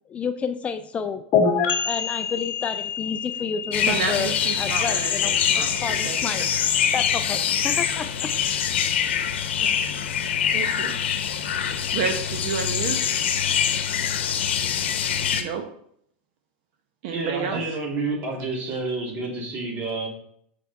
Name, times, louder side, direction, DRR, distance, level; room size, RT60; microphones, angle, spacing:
voice 1, 0.1-1.2 1.5-6.5 6.9-8.6, left 6 dB, 20° left, 9 dB, 0.4 m, -31 dB
sound 1, 1.3-8.9, left 5 dB, 35° left, 1.7 m, -29 dB
sound 2, 3.7-15.4, left 8 dB, 85° left, 0.9 m, -24 dB
voice 2, 3.9-6.2 10.5-10.9 11.9-13.0 15.3-15.7 17.0-17.6, right 6 dB, 60° right, 4 dB, 0.9 m, -30 dB
voice 3, 17.1-20.1, right 3 dB, 35° right, -1 dB, 2.6 m, -29 dB
6.4 x 5.3 x 4.1 m, 0.68 s
supercardioid pair, 130°, 6 cm